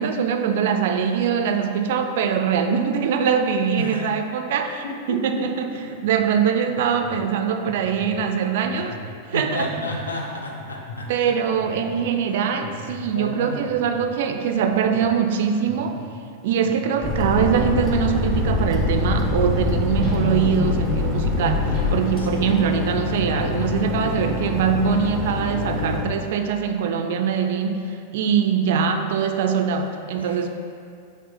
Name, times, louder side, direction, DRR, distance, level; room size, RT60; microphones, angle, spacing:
voice 1, 0.0-9.0 9.3-9.7 11.1-16.0 16.4-30.5, right 7 dB, 55° right, 6 dB, 0.3 m, -23 dB
sound 1, 5.7-6.1 6.7-7.1 7.6-8.1 8.6-9.0 9.6-10.0 10.6-11.0 11.6-11.9 12.6-13.0 13.7-14.0 14.7-15.0 15.6-16.0 16.6-17.0, left 5 dB, 55° left, 1.5 m, -40 dB
voice 2, 9.3-11.3 12.3-12.6 13.1-13.6 22.2-22.7 30.1-30.5, left 1 dB, 75° left, 0 dB, 0.6 m, -32 dB
sound 2, 17.0-26.0, left 3 dB, 15° left, 0.7 m, -28 dB
sound 3, 17.1-22.3, left 2 dB, 30° left, 1.4 m, -24 dB
6.1 x 2.1 x 4.2 m, 2.4 s
figure-of-eight pair, 90°, 0 cm